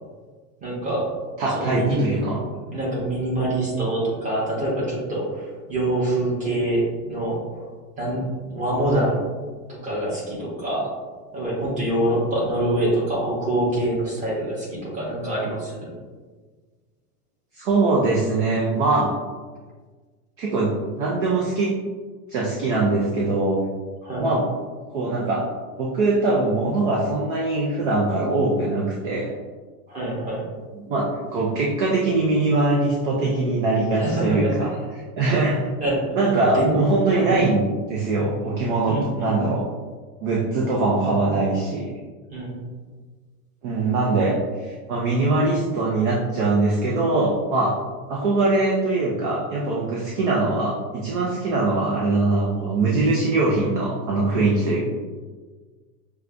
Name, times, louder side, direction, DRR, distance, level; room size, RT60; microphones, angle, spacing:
voice 1, 0.6-1.1 1.5-2.2 2.7-7.4 8.0-8.2 8.5-9.1 9.7-10.9 11.3-15.9 24.0-24.3 29.9-30.4 34.0-34.5 35.8-36.0 36.5-36.8 37.1-37.4 38.9-39.4 42.3-42.6, right 1 dB, 15° right, -6 dB, 1.1 m, -25 dB
voice 2, 1.4-2.4 17.5-19.1 20.4-20.7 21.0-21.7 22.3-23.6 24.2-24.4 24.9-25.4 25.8-29.3 30.7-34.7 35.2-35.6 36.1-37.6 37.9-39.6 40.2-41.9 43.6-47.8 48.1-54.9, right 2 dB, 35° right, -3 dB, 0.4 m, -22 dB
6.3 x 2.3 x 2.5 m, 1.4 s
supercardioid pair, 150°, 48 cm